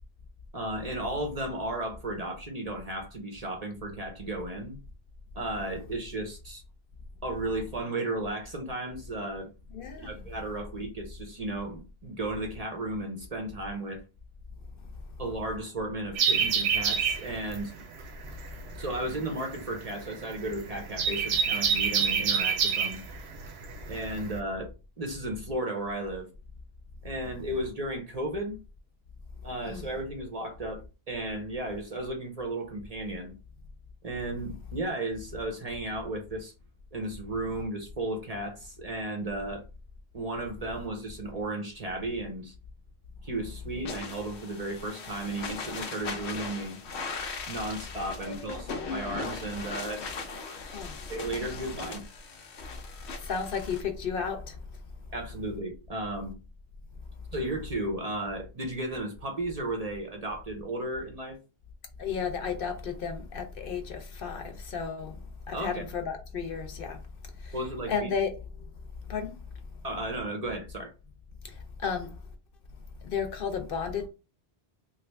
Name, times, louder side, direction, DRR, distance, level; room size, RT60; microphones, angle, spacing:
voice 1, 0.5-4.8 5.3-6.6 7.2-9.5 10.0-14.0 15.2-17.7 18.8-23.0 23.9-24.7 25.0-26.3 27.0-28.6 29.4-33.4 34.0-36.5 36.9-39.6 40.1-42.5 43.2-46.8 47.5-50.0 51.1-52.0 55.1-56.3 57.3-61.4 65.5-65.8 67.5-68.1 69.8-70.9, right 1 dB, 45° right, 0.7 m, -34 dB
voice 2, 9.7-10.2 29.6-29.9 48.2-48.9 50.7-51.0 53.2-54.6 62.0-65.2 65.5-67.0 67.4-67.6 67.9-68.3 69.1-69.3 71.8-72.1 73.0-74.1, left 6 dB, 60° left, 0.8 m, -33 dB
sound 1, 16.1-24.4, right 6 dB, 80° right, 0.9 m, -28 dB
sound 2, 43.8-53.8, left 4 dB, 90° left, 0.9 m, -39 dB
3.0 x 2.5 x 3.2 m
omnidirectional pair, 1.1 m